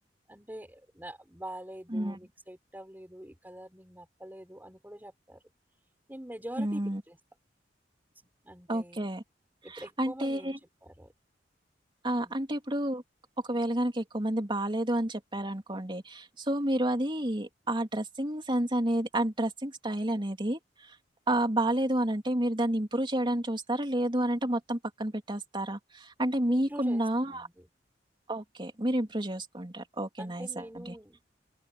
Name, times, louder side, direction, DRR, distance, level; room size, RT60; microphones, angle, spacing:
voice 1, 0.3-5.4 6.1-7.2 8.4-9.0 9.6-11.1 12.2-12.3 26.5-27.7 30.2-31.2, right 1 dB, 10° right, 4.5 m, -45 dB
voice 2, 6.6-7.0 8.7-9.2 9.7-10.6 12.0-13.0 13.4-20.9 21.3-27.5 28.3-30.9, right 1 dB, 30° right, 3.2 m, -30 dB
open air
head